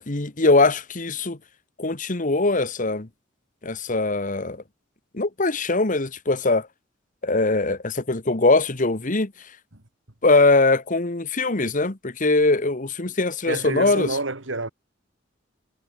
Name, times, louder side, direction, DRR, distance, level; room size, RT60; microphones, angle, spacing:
voice 1, 0.0-1.4 1.8-3.1 3.6-4.6 5.1-6.7 7.2-9.3 10.2-14.1, left 3 dB, 40° left, 1.5 m, -21 dB
voice 2, 13.5-14.7, right 3 dB, 75° right, 3.0 m, -28 dB
head